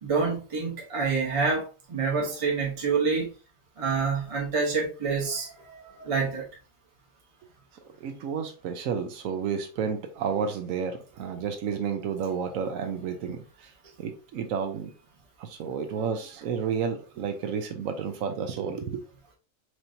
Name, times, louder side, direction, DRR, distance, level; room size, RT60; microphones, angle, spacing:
voice 1, 0.0-3.3 3.8-6.5, right 4 dB, 30° right, 0.9 m, -27 dB
voice 2, 8.0-13.7 14.0-14.9 15.4-19.0, right 6 dB, 85° right, 1.1 m, -31 dB
4.8 x 2.9 x 2.6 m
omnidirectional pair, 1.4 m